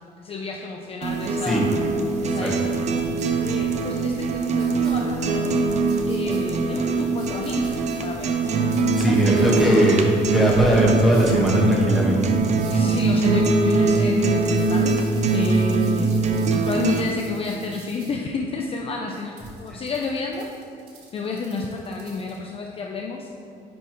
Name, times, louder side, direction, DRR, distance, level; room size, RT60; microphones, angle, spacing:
voice 1, 0.2-1.6 2.2-2.6 3.2-5.6 6.1-8.4 9.1-9.5 12.7-15.0 15.3-16.1 16.5-20.5 21.1-23.3, left 4 dB, 35° left, 1 dB, 0.4 m, -30 dB
sound 1, 1.0-17.0, right 3 dB, 45° right, 0.5 m, -22 dB
sound 2, 3.2-3.3 4.6-4.9 5.9-6.4 7.2-8.0 8.7-9.7 11.1-11.4 12.5-12.9 14.5-18.1 19.1-22.4, right 4 dB, 85° right, 1.3 m, -48 dB
voice 2, 8.9-12.2 19.7-19.8, equal, ahead, -5 dB, 1.3 m, -20 dB
10.0 x 3.5 x 3.0 m, 2.6 s
cardioid pair, 110°, 17 cm